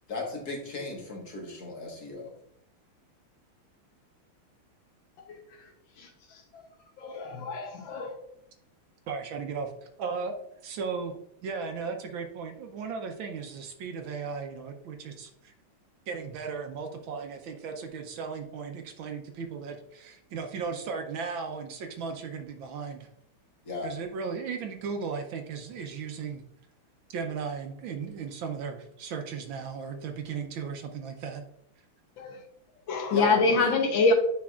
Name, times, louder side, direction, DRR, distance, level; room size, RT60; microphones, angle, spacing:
voice 1, 0.1-2.3 23.7-23.9 33.1-33.6, left 3 dB, 50° left, -1 dB, 1.8 m, -36 dB
voice 2, 7.0-8.1 32.2-32.4 32.9-34.1, left 3 dB, 65° left, 3 dB, 1.5 m, -25 dB
voice 3, 9.1-9.7 10.0-10.4 10.6-11.2 11.4-15.5 16.1-23.1 23.8-26.4 27.1-31.4, right 5 dB, 70° right, 5 dB, 1.4 m, -36 dB
10.0 x 4.2 x 2.4 m, 0.73 s
omnidirectional pair, 2.4 m